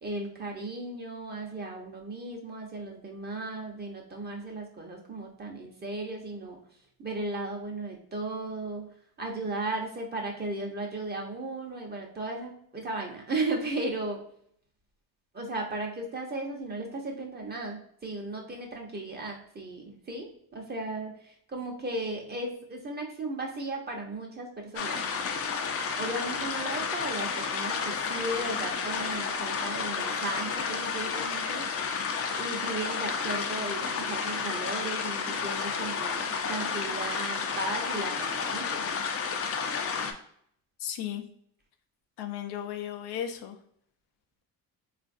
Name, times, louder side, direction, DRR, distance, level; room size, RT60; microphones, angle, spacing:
voice 1, 0.0-6.6 7.0-8.9 9.2-14.2 15.3-25.0 26.0-31.7 32.3-38.9, right 2 dB, 25° right, 0 dB, 0.8 m, -36 dB
sound 1, 24.8-40.1, left 5 dB, 40° left, 0.5 m, -31 dB
voice 2, 40.8-41.2 42.2-43.6, left 10 dB, 85° left, 6 dB, 0.6 m, -35 dB
3.9 x 2.5 x 2.5 m, 0.67 s
cardioid pair, 110°, 39 cm